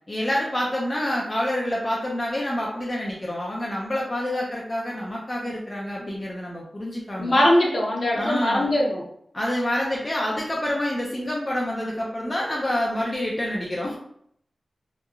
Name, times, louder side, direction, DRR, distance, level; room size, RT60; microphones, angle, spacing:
voice 1, 0.1-7.5 8.1-8.7 9.3-14.0, left 1 dB, 25° left, -3 dB, 0.4 m, -27 dB
voice 2, 7.2-9.0, left 1 dB, 50° left, -3 dB, 0.8 m, -21 dB
2.9 x 2.3 x 2.3 m, 0.69 s
wide cardioid pair, 125°, 0 cm